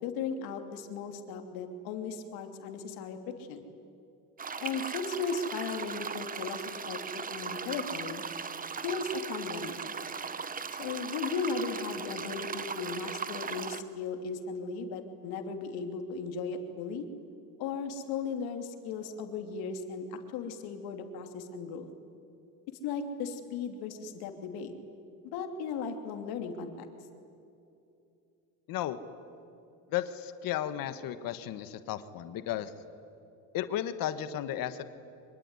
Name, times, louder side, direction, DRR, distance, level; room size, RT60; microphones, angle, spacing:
voice 1, 0.0-3.6 4.6-8.2 8.8-9.8 10.8-17.1 17.6-21.9 22.8-24.7 25.3-26.9, left 5 dB, 90° left, 5 dB, 2.9 m, -36 dB
sound 1, 4.4-13.8, right 5 dB, 25° right, 1.0 m, -38 dB
voice 2, 29.9-32.7 33.5-34.8, left 11 dB, 70° left, 11 dB, 1.5 m, -34 dB
25.0 x 23.5 x 9.8 m, 2.7 s
cardioid pair, 125°, 36 cm